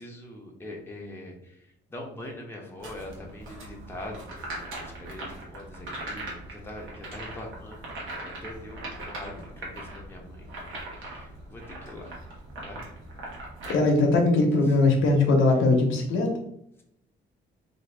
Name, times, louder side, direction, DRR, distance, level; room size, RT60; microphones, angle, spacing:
voice 1, 0.0-1.5 1.9-7.8 8.2-12.1 12.6-12.8, left 1 dB, 10° left, -1 dB, 0.8 m, -43 dB
sound 1, 2.8-13.7, right 1 dB, 85° right, 1.1 m, -40 dB
voice 2, 13.7-16.3, left 2 dB, 80° left, 2 dB, 0.8 m, -21 dB
2.8 x 2.6 x 3.3 m, 0.77 s
cardioid pair, 90°, 20 cm